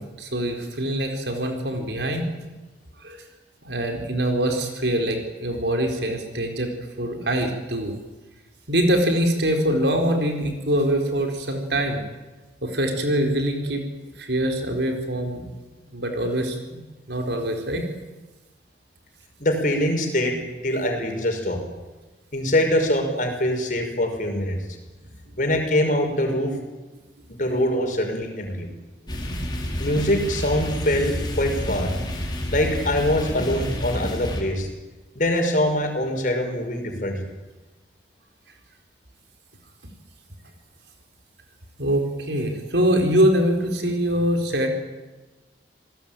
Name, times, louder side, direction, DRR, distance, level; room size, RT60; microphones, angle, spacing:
voice 1, 0.0-2.2 3.0-3.2 3.7-6.7 7.0-7.9 8.7-12.0 12.6-13.8 14.2-15.5 15.9-16.8 17.1-17.8 41.8-44.7, right 1 dB, 75° right, 4 dB, 4.5 m, -24 dB
voice 2, 19.4-20.4 20.6-21.6 22.3-24.6 25.4-26.6 27.4-28.7 29.8-31.9 32.5-34.7 35.2-37.2, left 1 dB, 45° left, 4 dB, 5.7 m, -23 dB
sound 1, 29.1-34.4, left 1 dB, 25° left, 4.6 m, -29 dB
28.0 x 18.5 x 9.2 m, 1.2 s
head